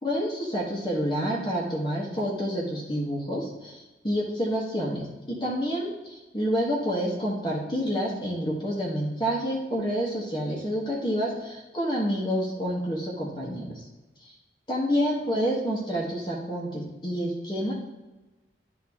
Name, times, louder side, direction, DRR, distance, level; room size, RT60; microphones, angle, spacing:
voice 1, 0.0-13.8 14.2-14.3 14.7-17.7, equal, 25° left, -3 dB, 1.4 m, -28 dB
11.0 x 3.8 x 3.6 m, 1.1 s
head